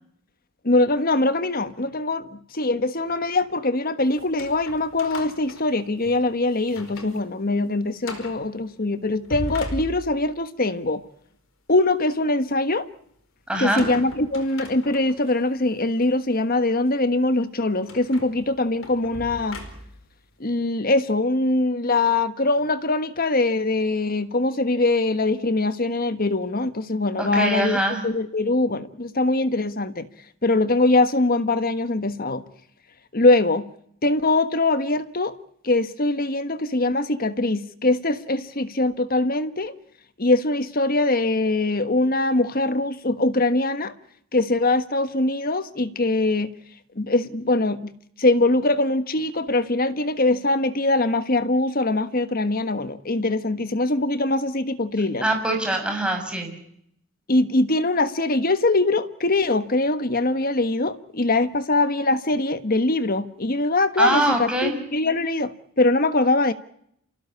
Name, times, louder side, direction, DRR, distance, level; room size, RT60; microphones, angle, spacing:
voice 1, 0.6-11.0 11.7-12.9 13.6-19.6 20.4-30.1 30.4-32.4 33.1-33.7 34.0-35.4 35.6-39.7 40.2-43.9 44.3-46.5 46.9-47.9 48.2-55.2 57.3-66.5, left 2 dB, 45° left, 1.4 m, -22 dB
sound 1, 4.1-6.2 6.6-7.2 7.5-7.6 8.0-8.4 9.1-10.4 13.6-15.3 16.0-16.1 17.9-20.1, left 1 dB, 65° left, 4.7 m, -38 dB
voice 2, 13.5-13.9 27.2-28.0 55.2-56.5 64.0-64.8, right 1 dB, 5° right, 6.2 m, -23 dB
28.0 x 16.5 x 8.5 m
head